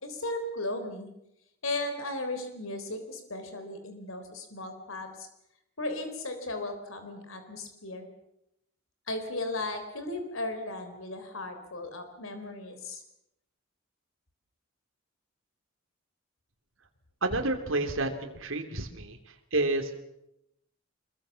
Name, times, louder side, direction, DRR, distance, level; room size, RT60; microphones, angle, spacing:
voice 1, 0.0-1.1 1.6-5.3 5.8-8.1 9.1-13.0, left 2 dB, 80° left, 7 dB, 3.8 m, -36 dB
voice 2, 17.2-19.2 19.5-19.9, right 2 dB, 75° right, 3 dB, 3.2 m, -29 dB
25.0 x 22.5 x 7.2 m, 0.82 s
head